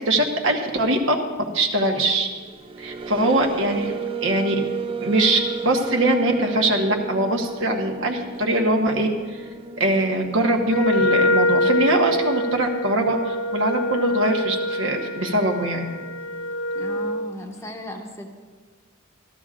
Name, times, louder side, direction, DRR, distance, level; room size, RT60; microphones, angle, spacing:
voice 1, 0.1-1.2 1.5-2.3 2.8-3.9 4.2-4.6 5.0-9.1 9.8-15.9 16.8-16.9, right 1 dB, 65° right, 2 dB, 1.1 m, -22 dB
sound 1, 2.3-10.7, right 5 dB, 25° right, 0.3 m, -33 dB
Wind instrument woodwind instrument, 10.7-17.3, left 1 dB, 70° left, 0.5 m, -24 dB
voice 2, 16.7-18.3, left 1 dB, 15° left, 2 dB, 0.8 m, -36 dB
13.5 x 13.5 x 2.5 m, 1.5 s
head